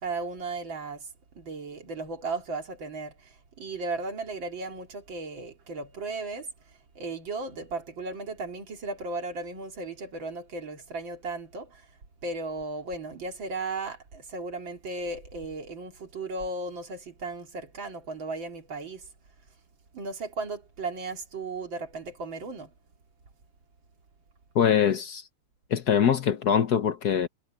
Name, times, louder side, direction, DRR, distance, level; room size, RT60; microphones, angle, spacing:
voice 1, 0.0-12.0 12.2-19.1 19.9-22.7, right 3 dB, 65° right, 3.4 m, -36 dB
voice 2, 24.5-25.2 25.7-27.3, left 8 dB, 55° left, 1.4 m, -23 dB
omnidirectional pair, 2.2 m